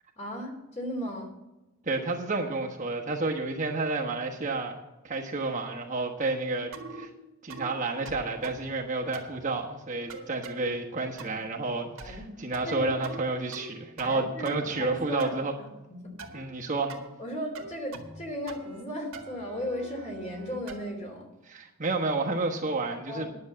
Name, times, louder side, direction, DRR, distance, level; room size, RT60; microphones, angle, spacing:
voice 1, 0.2-1.3 12.0-13.0 14.0-15.4 15.9-16.1 17.2-21.3 23.1-23.3, left 1 dB, 30° left, 1 dB, 2.9 m, -36 dB
voice 2, 1.9-4.7 5.0-7.1 7.4-15.5 16.3-16.9 21.5-23.3, right 3 dB, 35° right, 0 dB, 1.3 m, -30 dB
sound 1, 6.7-7.1 7.5-7.7 8.0-8.7 9.1-9.4 10.1-10.6 11.2-11.5 12.0-12.3 12.5-13.2 13.5-14.2 14.4-15.4 16.2-16.4 16.9-17.1 17.5-18.2 18.5-18.8 19.1-20.9, right 3 dB, 70° right, 1.7 m, -43 dB
10.5 x 7.1 x 7.8 m, 1.0 s
head